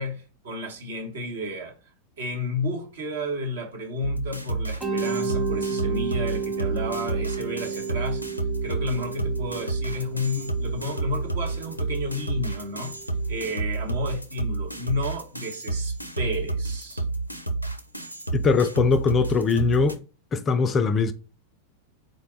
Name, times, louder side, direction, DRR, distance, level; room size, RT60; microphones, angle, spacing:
voice 1, 0.0-1.7 2.2-13.0 13.3-17.0, left 1 dB, 60° right, 1.0 m, -32 dB
sound 1, 4.0-20.0, right 3 dB, 90° left, 0.4 m, -30 dB
Mallet percussion, 4.8-13.6, right 5 dB, 15° right, 1.0 m, -33 dB
voice 2, 18.3-20.0 20.3-21.1, left 4 dB, 25° left, 0.3 m, -21 dB
3.8 x 2.2 x 3.7 m
figure-of-eight pair, 90°, 0 cm